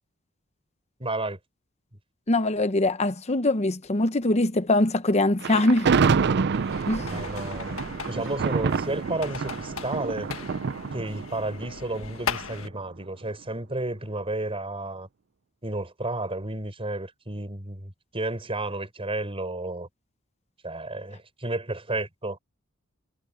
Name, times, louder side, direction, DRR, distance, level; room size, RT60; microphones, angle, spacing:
voice 1, 1.0-1.4 7.0-7.8 8.1-10.3 10.9-15.1 15.6-19.9 20.6-22.4, right 2 dB, 25° right, 5.3 m, -32 dB
voice 2, 2.3-5.9 6.9-7.2, left 2 dB, 30° left, 0.9 m, -23 dB
Thunder, 5.4-12.6, right 5 dB, 55° right, 0.5 m, -27 dB
sound 1, 6.5-12.7, left 5 dB, 80° left, 1.6 m, -38 dB
head